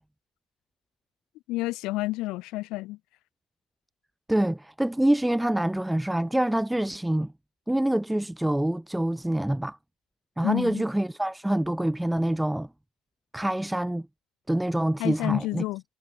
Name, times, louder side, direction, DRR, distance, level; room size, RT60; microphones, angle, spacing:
voice 1, 1.5-3.0 10.4-10.8 15.0-15.8, left 19 dB, 70° left, 0.4 m, -29 dB
voice 2, 4.3-7.3 7.7-9.8 10.4-12.7 13.3-14.1 14.5-15.6, right 1 dB, 5° right, 0.4 m, -26 dB
supercardioid pair, 95°, 0 cm